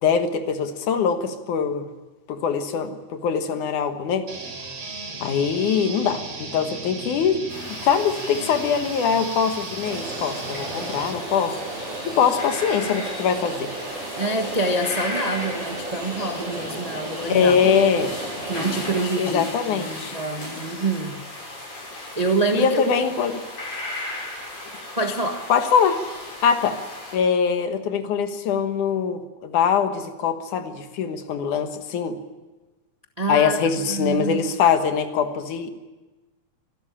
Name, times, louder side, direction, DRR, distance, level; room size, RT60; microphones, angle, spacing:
voice 1, 0.0-1.9 2.3-4.3 5.2-7.4 7.7-11.6 12.1-13.7 17.3-18.1 19.2-20.2 22.5-23.4 25.5-26.0 26.4-26.8 27.1-32.2 33.3-35.7, left 7 dB, 85° left, 8 dB, 2.9 m, -22 dB
sound 1, 4.3-11.1, right 3 dB, 60° right, 4.6 m, -36 dB
sound 2, 7.5-27.1, left 2 dB, 55° left, 7.6 m, -36 dB
Rain, 9.9-19.0, right 2 dB, 85° right, 5.5 m, -34 dB
voice 2, 14.2-17.6 18.5-21.2 22.2-22.8 25.0-25.4 33.2-33.6 33.9-34.4, right 2 dB, 30° right, 4 dB, 0.6 m, -26 dB
25.5 x 12.5 x 9.9 m, 1.2 s
omnidirectional pair, 3.4 m